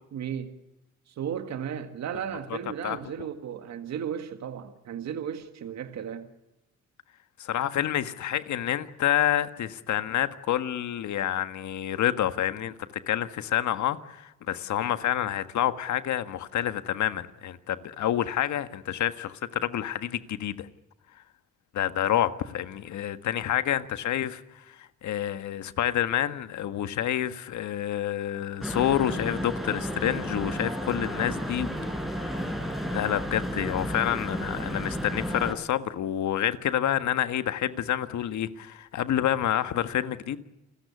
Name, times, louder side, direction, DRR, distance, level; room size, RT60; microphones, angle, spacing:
voice 1, 0.1-0.6 1.1-6.3, right 8 dB, 65° right, 1.8 m, -35 dB
voice 2, 7.4-12.7 13.1-20.7 21.7-32.4 32.9-40.4, left 11 dB, 70° left, 1.6 m, -28 dB
sound 1, 28.6-35.5, equal, ahead, 4.4 m, -32 dB
29.0 x 14.5 x 9.7 m
cardioid pair, 90°, 30 cm